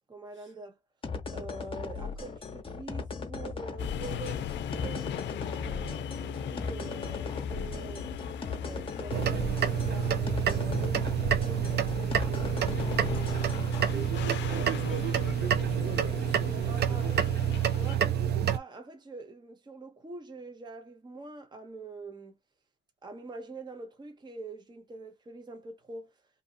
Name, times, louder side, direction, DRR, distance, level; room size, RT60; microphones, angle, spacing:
voice 1, 0.1-0.8 1.3-8.1 8.6-13.5 13.9-14.1 16.7-17.1 17.6-22.3 23.0-26.1, right 3 dB, 20° right, 0.8 m, -44 dB
sound 1, 1.0-13.9, left 4 dB, 25° left, 0.9 m, -38 dB
sound 2, 3.8-17.9, left 9 dB, 65° left, 0.4 m, -39 dB
sound 3, 9.1-18.6, right 8 dB, 55° right, 0.5 m, -28 dB
voice 2, 13.9-17.2, right 6 dB, 70° right, 1.5 m, -40 dB
2.8 x 2.6 x 2.6 m
cardioid pair, 90°, 20 cm